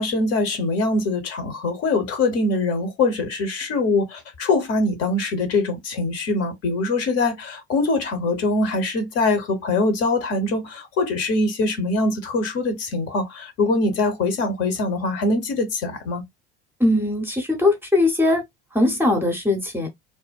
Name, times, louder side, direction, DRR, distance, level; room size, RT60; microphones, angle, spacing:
voice 1, 0.0-16.2, left 2 dB, 45° left, 0.8 m, -23 dB
voice 2, 16.8-18.4 18.7-19.9, left 2 dB, 5° right, 0.7 m, -20 dB
2.6 x 2.1 x 2.2 m
figure-of-eight pair, 65°, 33 cm